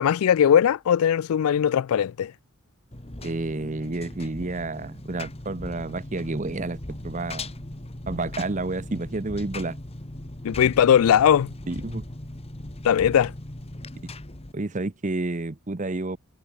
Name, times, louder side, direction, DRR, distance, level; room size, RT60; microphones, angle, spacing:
voice 1, 0.0-2.3 10.4-11.5 12.8-13.3, left 9 dB, 70° left, 0.3 m, -19 dB
Engine, 2.9-14.5, left 1 dB, 25° left, 1.6 m, -39 dB
voice 2, 3.2-7.5 8.1-9.8 11.7-12.0 14.5-16.2, right 2 dB, 35° right, 0.8 m, -30 dB
head